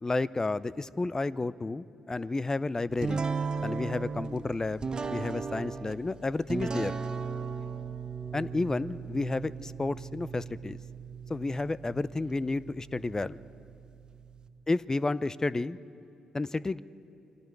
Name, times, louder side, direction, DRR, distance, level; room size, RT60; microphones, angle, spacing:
voice 1, 0.0-3.3 3.6-7.0 8.3-10.8 11.3-13.4 14.7-15.8 16.3-16.8, left 3 dB, 25° left, 19 dB, 0.6 m, -31 dB
sound 1, 3.0-14.5, right 5 dB, 35° right, 1.2 m, -37 dB
28.5 x 22.5 x 4.7 m, 2.6 s
hypercardioid pair, 40°, 2 cm